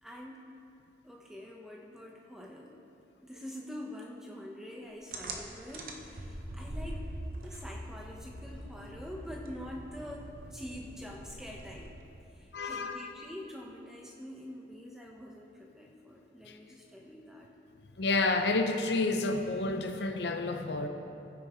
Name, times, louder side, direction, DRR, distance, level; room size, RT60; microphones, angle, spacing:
voice 1, 0.0-0.4 1.0-2.8 3.2-7.0 7.4-11.9 12.3-17.5, left 1 dB, 5° right, -2 dB, 1.0 m, -45 dB
sound 1, 5.1-12.3, right 1 dB, 50° right, 0.9 m, -43 dB
voice 2, 12.5-13.1 16.5-16.6 18.0-20.9, left 3 dB, 75° left, 6 dB, 0.6 m, -30 dB
16.0 x 9.3 x 3.1 m, 2.7 s
head